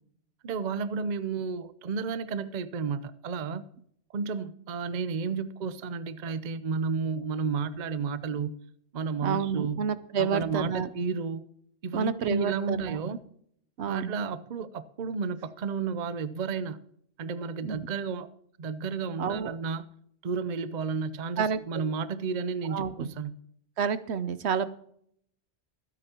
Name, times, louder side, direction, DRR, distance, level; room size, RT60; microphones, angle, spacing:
voice 1, 0.4-3.6 4.1-8.6 8.9-9.8 10.2-11.5 11.8-13.2 13.9-16.8 17.2-18.3 18.6-19.9 20.2-23.4, right 5 dB, 45° right, 0.7 m, -32 dB
voice 2, 9.2-10.9 11.9-13.0 13.8-14.2 17.6-17.9 19.2-19.5 21.4-21.9 22.7-23.1 23.8-24.7, right 6 dB, 70° right, 1.0 m, -29 dB
24.0 x 8.9 x 2.9 m
omnidirectional pair, 1.2 m